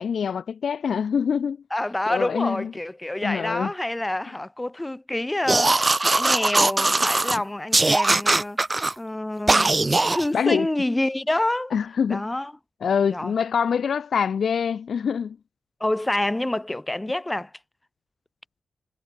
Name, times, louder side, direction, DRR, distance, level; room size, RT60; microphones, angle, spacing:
voice 1, 0.0-1.6 2.1-2.7 3.2-3.7 10.3-10.7 11.7-12.2 12.8-15.4, left 7 dB, 75° left, 0.7 m, -24 dB
voice 2, 1.7-8.6 9.0-11.7 12.1-12.5 13.1-13.3 15.8-17.5, left 1 dB, 10° left, 3.0 m, -27 dB
sound 1, 5.5-7.4 7.7-8.9 9.5-10.3, right 2 dB, 20° right, 0.4 m, -20 dB
wide cardioid pair, 150°, 0 cm